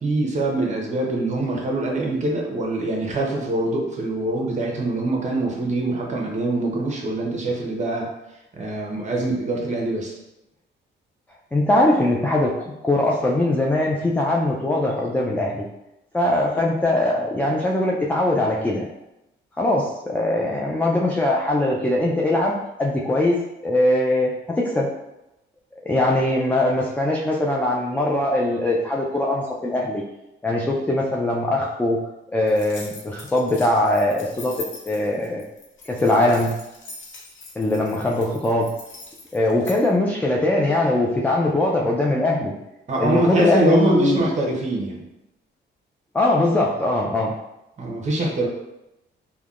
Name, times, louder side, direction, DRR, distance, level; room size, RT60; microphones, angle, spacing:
voice 1, 0.0-8.1 8.5-10.2 42.9-45.0 47.8-48.5, right 2 dB, 35° right, -1 dB, 0.8 m, -24 dB
voice 2, 11.5-15.7 16.1-18.9 19.6-24.9 25.8-30.0 30.4-32.0 32.3-34.5 34.9-35.4 35.9-36.6 37.6-38.7 39.3-42.5 43.0-44.2 46.1-47.3, left 1 dB, 10° left, -2 dB, 0.3 m, -21 dB
sound 1, 32.5-39.8, left 2 dB, 70° left, 0.8 m, -41 dB
3.4 x 2.2 x 2.3 m, 0.91 s
cardioid pair, 90°, 20 cm